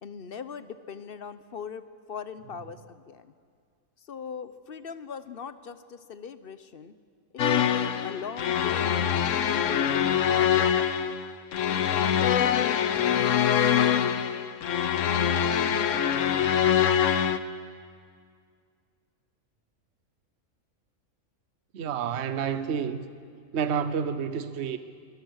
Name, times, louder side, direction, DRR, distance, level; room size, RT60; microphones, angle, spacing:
voice 1, 0.0-3.3 4.1-6.9 7.3-11.2, left 6 dB, 50° left, 12 dB, 0.9 m, -40 dB
sound 1, 7.4-17.4, left 8 dB, 70° left, 1.1 m, -24 dB
voice 2, 21.7-23.0 23.5-24.8, right 7 dB, 60° right, 11 dB, 1.1 m, -29 dB
25.5 x 19.5 x 6.4 m, 2.1 s
omnidirectional pair, 1.4 m